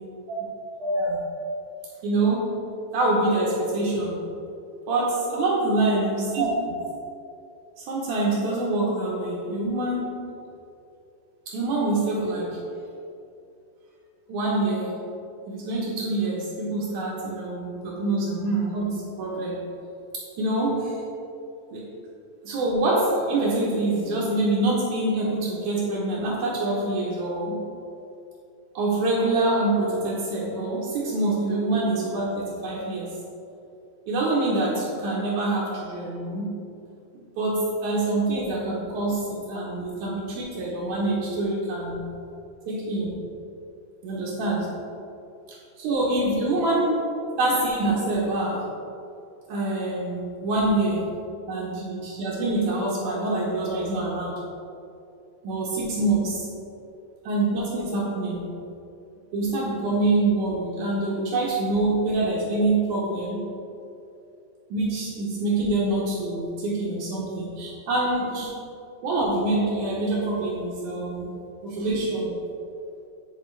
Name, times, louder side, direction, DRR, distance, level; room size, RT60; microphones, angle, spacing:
voice 1, 0.8-1.2 2.0-2.6 2.9-4.3 4.9-6.5 6.8-6.9 7.8-10.2 11.5-12.7 14.3-15.0 15.5-19.7 20.1-21.0 21.7-21.9 22.4-27.7 28.7-33.2 34.1-36.6 37.4-42.1 42.7-43.3 44.0-44.8 45.8-46.9 47.4-48.7 49.5-51.2 51.5-54.4 55.4-56.5 57.2-58.6 59.3-63.4 64.7-68.6 69.0-71.3 71.6-72.4, right 2 dB, 90° right, -5 dB, 1.7 m, -25 dB
9.9 x 3.7 x 3.2 m, 2.6 s
omnidirectional pair, 4.7 m